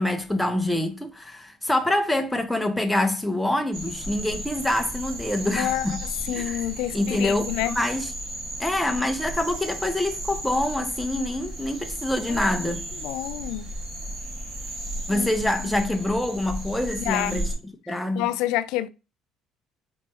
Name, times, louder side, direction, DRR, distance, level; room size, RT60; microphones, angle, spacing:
voice 1, 0.0-6.0 6.3-6.7 6.9-8.1 8.6-12.8 15.1-17.5 17.9-18.3, left 1 dB, 5° left, 0.6 m, -26 dB
sound 1, 3.7-17.6, right 1 dB, 45° right, 1.8 m, -34 dB
voice 2, 6.3-7.8 12.3-12.5 13.0-13.6 15.1-15.3 15.6-15.7 17.0-17.4 18.2-18.9, left 14 dB, 85° left, 0.3 m, -28 dB
4.2 x 3.1 x 3.4 m
cardioid pair, 120°, 0 cm